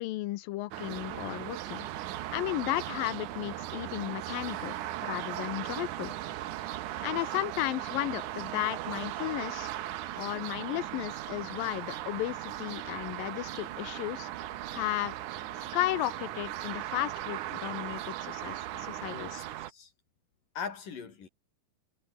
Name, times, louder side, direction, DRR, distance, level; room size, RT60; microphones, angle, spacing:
voice 1, 0.0-1.9 2.3-6.1 7.0-9.7 10.2-14.3 14.7-15.1 15.7-19.3, left 17 dB, 90° left, 2.6 m, -34 dB
sound 1, 0.7-19.7, right 13 dB, 70° right, 2.4 m, -38 dB
voice 2, 19.0-19.4 19.7-19.9 20.6-21.3, left 6 dB, 70° left, 5.5 m, -40 dB
omnidirectional pair, 3.9 m